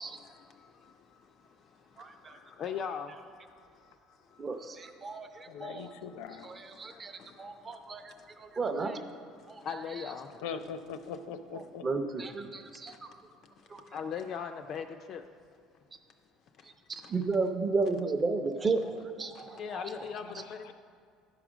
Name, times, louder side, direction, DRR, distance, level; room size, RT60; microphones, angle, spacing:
voice 1, 0.0-8.6 9.2-10.4 12.9-15.3 16.6-17.2 19.3-20.7, left 7 dB, 40° left, 0.3 m, -43 dB
voice 2, 2.0-2.4 4.4-5.9 6.4-7.1 7.4-8.1 8.4-9.0 9.5-9.6 11.5-12.9 13.7-13.8 16.9-19.9, right 3 dB, 20° right, 0.5 m, -33 dB
voice 3, 5.5-6.5 10.4-11.9 20.2-20.7, left 6 dB, 85° left, 0.6 m, -41 dB
10.5 x 4.8 x 6.1 m
cardioid pair, 165°, 0 cm